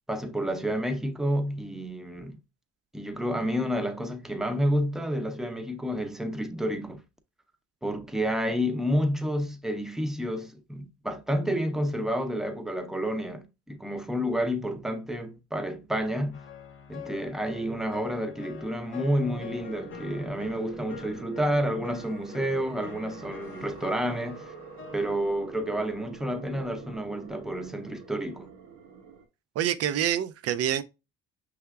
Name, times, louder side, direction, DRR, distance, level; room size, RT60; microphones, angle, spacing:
voice 1, 0.1-2.4 2.9-7.0 7.8-16.4 16.9-24.5 24.9-28.5, equal, ahead, 0.6 m, -30 dB
sound 1, 16.3-25.2, left 8 dB, 45° left, 0.8 m, -45 dB
sound 2, 19.2-29.2, right 6 dB, 80° right, 0.9 m, -45 dB
voice 2, 29.6-30.8, right 10 dB, 55° right, 0.5 m, -26 dB
5.5 x 3.5 x 2.3 m
supercardioid pair, 70°, 29 cm